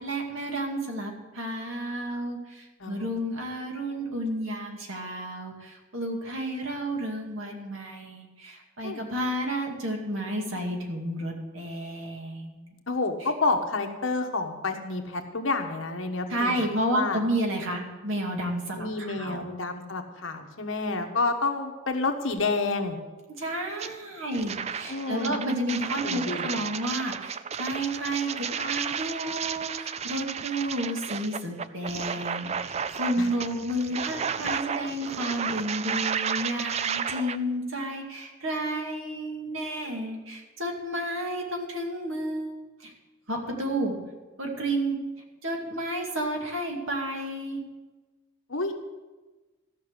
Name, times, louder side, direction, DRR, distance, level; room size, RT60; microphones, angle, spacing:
voice 1, 0.0-12.7 13.2-13.3 16.3-19.4 23.4-42.9 43.3-43.9 44.4-45.0 45.4-47.6, right 1 dB, 80° right, 1 dB, 2.4 m, -31 dB
voice 2, 12.9-17.2 18.8-23.0 24.9-25.3 26.0-26.5 33.2-33.3 48.5-48.7, left 3 dB, 80° left, 4 dB, 1.4 m, -29 dB
sound 1, 23.8-23.9 24.3-37.4, right 7 dB, 30° right, 0.3 m, -32 dB
14.0 x 6.1 x 8.1 m, 1.2 s
head